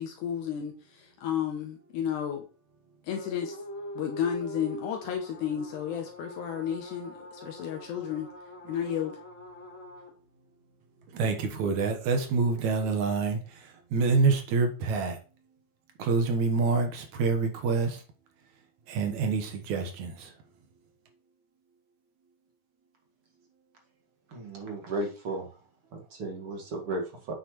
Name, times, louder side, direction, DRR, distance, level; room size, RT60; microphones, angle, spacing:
voice 1, 0.0-2.5 3.0-3.6 4.0-8.3 8.6-9.2, left 9 dB, 80° left, 2.3 m, -32 dB
sound 1, 3.1-10.1 11.8-12.9, equal, 35° left, 0.9 m, -44 dB
voice 2, 11.1-15.2 16.0-18.0 18.9-20.3, right 4 dB, 75° right, 2.6 m, -27 dB
voice 3, 24.3-25.5 25.9-27.3, right 2 dB, 50° right, 2.6 m, -34 dB
8.4 x 7.4 x 3.1 m
omnidirectional pair, 3.5 m